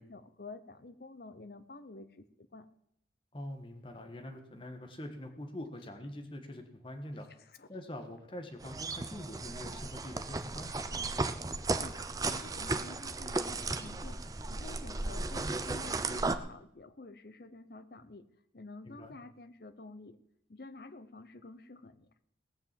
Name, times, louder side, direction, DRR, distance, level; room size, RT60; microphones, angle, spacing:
voice 1, 0.0-2.3 2.5-2.7 7.4-7.7 11.7-14.2 14.5-18.3 18.5-20.2 20.5-22.1, left 3 dB, 55° left, 11 dB, 0.8 m, -50 dB
voice 2, 3.3-7.3 7.7-10.9 15.4-15.6 18.8-19.1, left 1 dB, 30° left, 4 dB, 1.5 m, -44 dB
sound 1, 8.6-16.4, right 3 dB, 20° right, 0.6 m, -35 dB
18.0 x 6.9 x 7.6 m, 0.75 s
head